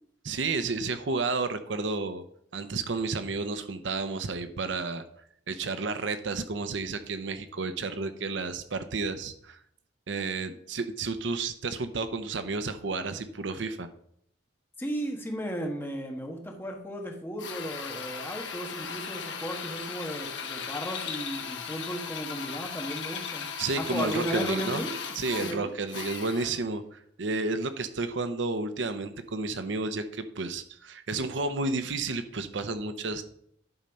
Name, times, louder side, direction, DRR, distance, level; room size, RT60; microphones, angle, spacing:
voice 1, 0.2-2.2 2.5-5.0 5.5-9.6 10.1-13.9 23.6-24.8 25.2-33.2, right 3 dB, 75° right, 10 dB, 0.7 m, -31 dB
voice 2, 14.8-24.9 25.4-25.7, equal, 10° left, 2 dB, 1.4 m, -35 dB
Drill, 17.4-26.7, left 6 dB, 75° left, 1.1 m, -37 dB
11.0 x 4.4 x 5.3 m, 0.68 s
head